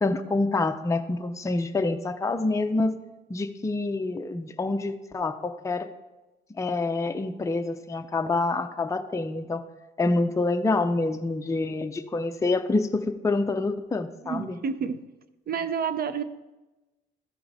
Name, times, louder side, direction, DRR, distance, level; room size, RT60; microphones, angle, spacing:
voice 1, 0.0-2.9 3.3-5.9 6.6-9.6 10.0-14.6, left 3 dB, 15° left, 6 dB, 0.5 m, -27 dB
voice 2, 14.2-15.0 15.5-16.2, right 6 dB, 50° right, 12 dB, 0.5 m, -29 dB
14.0 x 4.6 x 4.0 m, 1.1 s
cardioid pair, 90°, 20 cm